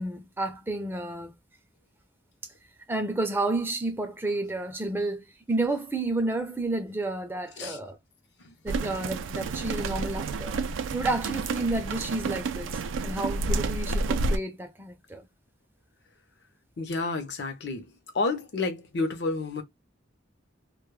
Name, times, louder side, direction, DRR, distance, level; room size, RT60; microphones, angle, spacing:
voice 1, 0.0-1.3 2.9-8.0 8.6-10.5 10.9-15.2, right 2 dB, 10° right, 0.4 m, -31 dB
sound 1, 8.7-14.4, right 3 dB, 85° right, 0.3 m, -30 dB
voice 2, 16.8-17.9 18.1-19.6, left 3 dB, 60° left, 0.6 m, -30 dB
2.2 x 2.0 x 3.0 m
head